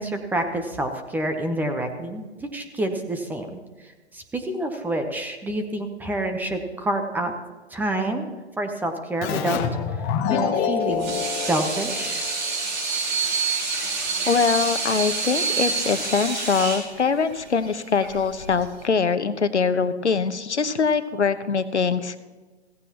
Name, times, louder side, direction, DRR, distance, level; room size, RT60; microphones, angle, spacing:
voice 1, 0.0-7.3 7.7-8.3 8.6-9.6 9.9-11.1 11.4-12.2, right 1 dB, 5° right, 5 dB, 0.9 m, -28 dB
Keyboard (musical), 9.2-12.6, left 7 dB, 25° left, 0.9 m, -26 dB
Water tap faucet / Sink (filling or washing), 10.8-18.8, right 4 dB, 40° right, 4.4 m, -27 dB
voice 2, 14.2-22.1, left 5 dB, 85° left, 12 dB, 1.0 m, -23 dB
16.0 x 15.0 x 3.0 m, 1.3 s
figure-of-eight pair, 130°, 33 cm